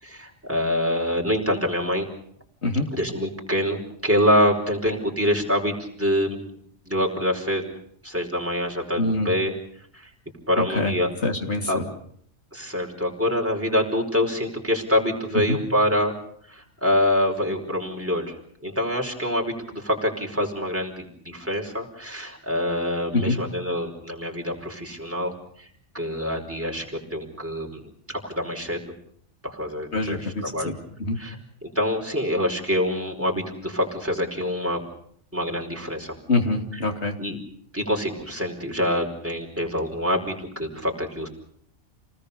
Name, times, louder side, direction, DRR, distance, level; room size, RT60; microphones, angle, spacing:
voice 1, 0.0-2.1 2.9-6.5 6.9-7.7 8.0-9.5 9.9-10.1 10.5-11.1 11.7-11.8 12.5-16.1 16.5-18.3 18.6-25.3 25.6-25.7 25.9-26.8 27.1-27.8 28.2-28.8 29.4-30.2 30.5-30.7 31.2-31.3 31.6-34.8 35.3-36.1 37.2-37.4 37.7-41.3, equal, 10° right, -1 dB, 4.9 m, -25 dB
voice 2, 9.0-9.3 10.6-10.9 11.2-11.8 23.1-23.4 29.9-30.7 31.0-31.2 36.3-37.1, left 2 dB, 65° left, 3 dB, 3.3 m, -25 dB
29.0 x 19.5 x 6.9 m, 0.65 s
omnidirectional pair, 1.2 m